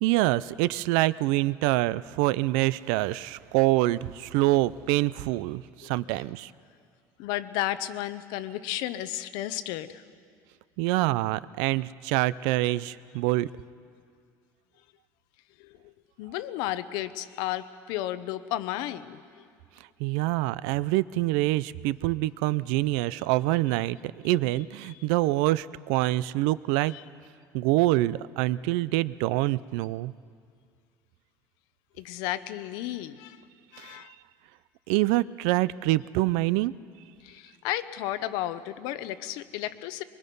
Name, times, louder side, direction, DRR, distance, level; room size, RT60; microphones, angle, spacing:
voice 1, 0.0-6.5 10.8-13.5 20.0-27.0 27.5-30.1 33.8-34.1 34.9-36.7, right 18 dB, 90° right, 18 dB, 0.5 m, -26 dB
voice 2, 7.2-10.0 15.6-15.9 16.2-19.4 26.9-27.0 32.0-33.4 33.7-34.1 37.2-40.0, left 14 dB, 70° left, 13 dB, 0.8 m, -33 dB
24.0 x 22.5 x 5.4 m, 2.2 s
cardioid pair, 175°, 8 cm